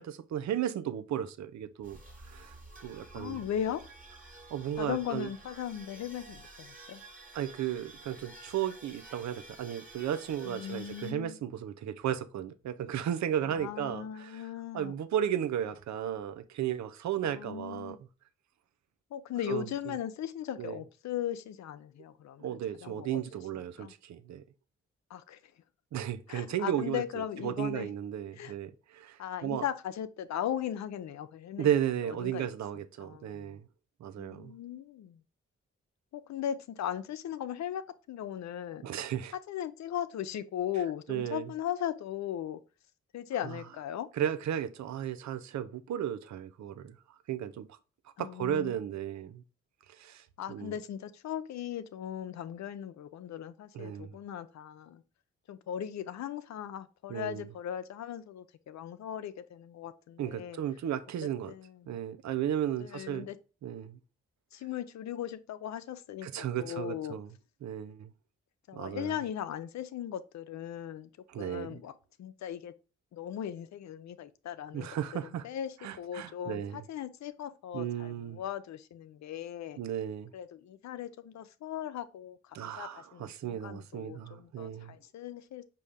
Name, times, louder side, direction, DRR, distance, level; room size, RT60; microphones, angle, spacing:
voice 1, 0.0-2.0 2.3-2.5 2.8-3.4 4.5-5.3 7.3-14.4 14.7-18.0 19.5-19.9 20.6-20.8 22.4-24.4 25.9-27.0 27.4-29.6 31.6-33.6 34.0-34.5 38.8-39.3 41.1-41.5 44.2-46.9 47.3-47.7 48.2-49.4 50.0-50.7 53.7-54.1 57.1-57.5 60.2-61.5 61.9-63.3 63.6-64.0 66.2-67.3 67.6-68.1 68.7-69.2 71.3-71.8 74.7-75.4 75.8-76.8 77.7-78.4 79.8-80.3 82.5-84.9, right 10 dB, 65° right, 0.6 m, -34 dB
sound 1, 1.8-11.1, right 2 dB, 30° right, 1.5 m, -51 dB
voice 2, 3.1-3.9 4.8-7.0 10.5-11.4 13.4-14.9 17.2-18.0 19.1-23.2 23.8-23.9 25.1-25.4 26.3-27.9 28.4-28.5 29.2-31.7 32.1-32.5 33.0-33.6 34.2-35.2 36.1-38.9 39.5-42.6 43.1-44.1 48.2-48.7 50.4-55.0 55.5-60.6 61.5-62.0 62.8-63.4 64.5-67.2 68.7-71.1 71.4-71.9 72.2-72.7 73.1-74.9 75.2-79.8 80.3-85.6, left 10 dB, 65° left, 0.5 m, -38 dB
5.2 x 2.7 x 3.5 m
supercardioid pair, 45°, 30 cm